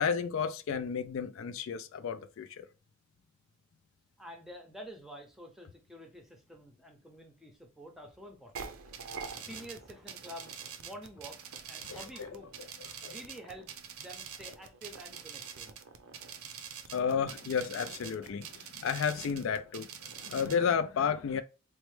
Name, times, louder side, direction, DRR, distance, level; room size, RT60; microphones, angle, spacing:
voice 1, 0.0-2.7 11.9-12.3 13.0-13.1 16.9-19.9 20.2-21.4, left 6 dB, 70° left, 0.3 m, -32 dB
voice 2, 4.2-8.9 9.2-11.4 11.7-12.5 12.8-13.7 14.0-15.8, equal, ahead, 0.6 m, -49 dB
sound 1, 8.6-20.6, right 7 dB, 90° right, 0.6 m, -45 dB
4.2 x 2.1 x 3.1 m
head